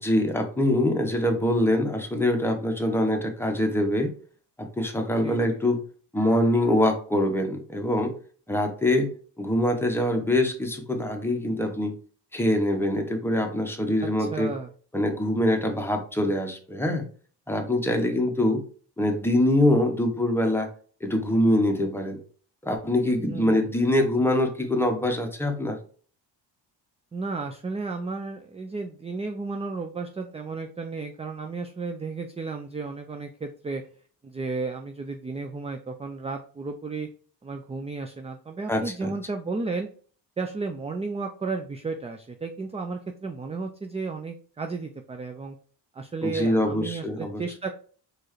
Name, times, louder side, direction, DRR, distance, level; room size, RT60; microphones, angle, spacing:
voice 1, 0.0-4.1 4.6-5.8 6.1-8.1 8.5-9.1 9.4-11.9 12.3-14.5 14.9-17.1 17.5-18.6 19.0-20.7 21.0-22.2 22.6-25.8 38.7-39.1 46.2-47.4, left 1 dB, 5° left, 3 dB, 0.9 m, -24 dB
voice 2, 5.2-5.6 14.0-14.7 23.3-23.6 27.1-33.8 34.2-37.1 37.4-39.9 40.4-45.6 45.9-47.7, right 4 dB, 15° right, 5 dB, 0.4 m, -33 dB
4.4 x 3.2 x 3.1 m, 0.43 s
cardioid pair, 90°, 44 cm